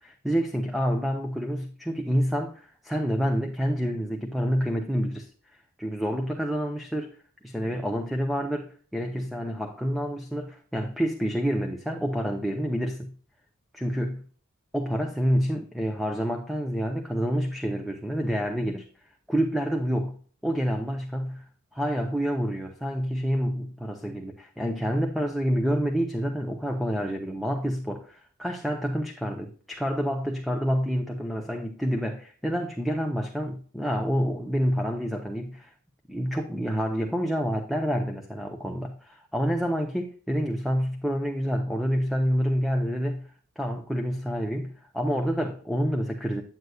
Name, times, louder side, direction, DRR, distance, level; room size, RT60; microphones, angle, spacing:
voice 1, 0.0-5.3 5.8-7.2 7.4-13.1 13.7-14.2 14.7-18.9 19.3-20.2 20.4-21.4 21.7-35.7 36.1-43.3 43.6-46.4, equal, ahead, 3 dB, 0.7 m, -28 dB
9.3 x 7.9 x 2.3 m, 0.43 s
head